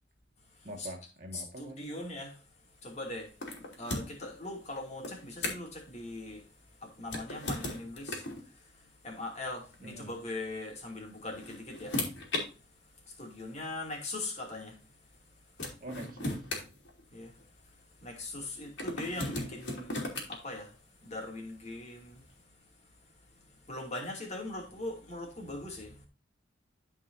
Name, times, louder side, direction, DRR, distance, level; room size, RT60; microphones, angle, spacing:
voice 1, 0.6-2.0 9.8-10.1 15.8-16.5, right 1 dB, 45° right, 1.7 m, -44 dB
voice 2, 1.3-2.3 2.8-3.3 3.8-6.4 6.8-8.2 9.0-11.9 13.2-14.7 17.1-17.3 18.0-20.0 20.3-20.7 21.0-22.2 23.7-26.1, left 2 dB, 35° left, 2.5 m, -40 dB
sound 1, 3.4-4.3 5.0-5.8 7.0-8.4 9.7-9.9 11.0-12.5 13.4-13.5 15.1-15.2 15.6-17.4 18.8-20.4, left 2 dB, 70° left, 2.8 m, -36 dB
13.5 x 4.9 x 2.6 m
head